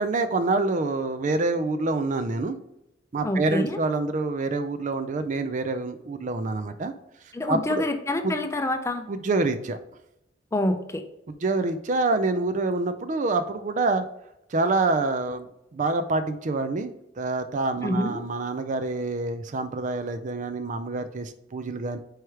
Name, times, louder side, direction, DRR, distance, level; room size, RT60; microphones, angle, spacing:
voice 1, 0.0-2.6 3.1-6.9 7.5-7.8 8.2-8.3 9.1-9.8 11.4-14.0 14.5-15.5 15.7-16.9 17.2-22.0, right 3 dB, 40° right, 10 dB, 0.4 m, -26 dB
voice 2, 3.2-3.8 7.3-9.1 10.5-11.0 17.8-18.2, left 1 dB, 15° left, 7 dB, 0.5 m, -27 dB
4.7 x 4.7 x 4.6 m, 0.85 s
head